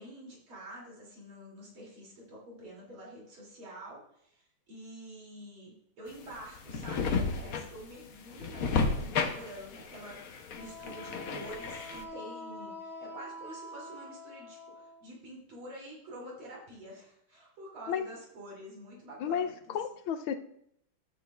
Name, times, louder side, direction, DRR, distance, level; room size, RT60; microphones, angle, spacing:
voice 1, 0.0-19.8, right 1 dB, 75° right, -4 dB, 3.6 m, -48 dB
sound 1, 6.1-12.0, left 4 dB, 60° left, 0.9 m, -33 dB
Wind instrument woodwind instrument, 10.5-15.0, left 1 dB, ahead, 2.0 m, -45 dB
voice 2, 19.2-20.4, left 8 dB, 80° left, 8 dB, 1.4 m, -32 dB
12.5 x 8.4 x 2.3 m, 0.71 s
omnidirectional pair, 2.3 m